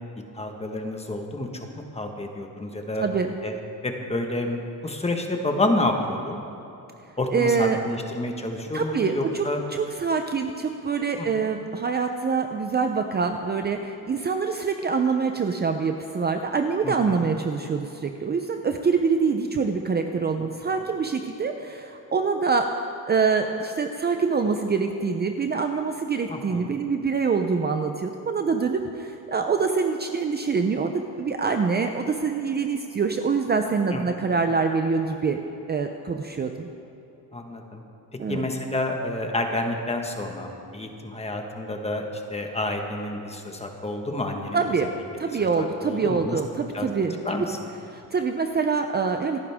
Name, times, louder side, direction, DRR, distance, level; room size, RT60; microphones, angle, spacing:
voice 1, 0.3-3.0 3.4-3.5 3.8-6.4 7.2-9.6 11.2-11.5 16.8-17.2 26.3-26.7 33.9-34.0 37.3-37.8 38.3-44.6 45.6-46.4 46.7-46.9 47.2-47.7, left 2 dB, 15° left, 3 dB, 1.5 m, -29 dB
voice 2, 7.3-7.8 8.7-22.7 23.1-35.4 35.7-36.7 38.2-38.4 44.5-44.9 45.2-47.4 47.9-49.4, right 5 dB, 25° right, 5 dB, 0.6 m, -25 dB
28.0 x 10.0 x 3.6 m, 2.9 s
cardioid pair, 120°, 38 cm